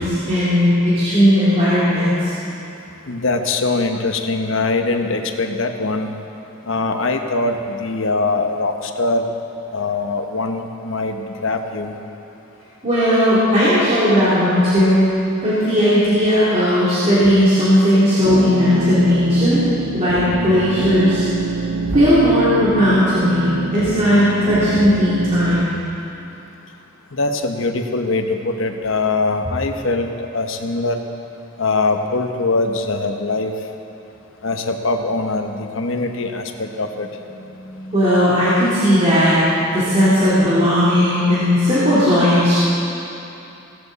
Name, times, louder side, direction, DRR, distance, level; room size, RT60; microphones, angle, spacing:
voice 1, 0.3-2.3 12.8-15.1 15.4-19.6 19.9-21.2 21.9-25.7 37.5-42.6, equal, 30° right, -12 dB, 3.0 m, -16 dB
voice 2, 3.1-6.1 6.7-9.3 9.7-11.9 27.1-31.0 31.6-33.5 34.4-37.1, left 3 dB, 65° left, 5 dB, 1.0 m, -22 dB
sound 1, 18.2-25.6, right 3 dB, 90° right, 0.6 m, -25 dB
17.5 x 14.0 x 4.1 m, 2.8 s
head